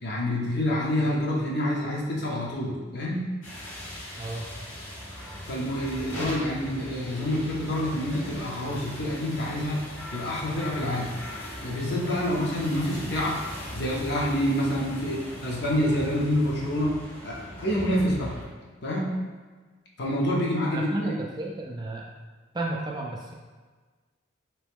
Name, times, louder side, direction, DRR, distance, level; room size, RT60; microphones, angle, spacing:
voice 1, 0.0-3.3 5.5-9.8 10.1-11.1 11.6-13.4 13.7-17.0 17.2-18.3 18.8-19.2 20.0-21.1, left 1 dB, 55° left, -3 dB, 0.7 m, -27 dB
sound 1, 3.4-18.4, left 1 dB, 80° left, 1.2 m, -39 dB
voice 2, 4.2-4.5 20.7-22.1 22.5-23.3, right 2 dB, 20° right, -1 dB, 0.3 m, -32 dB
3.3 x 3.0 x 3.5 m, 1.4 s
head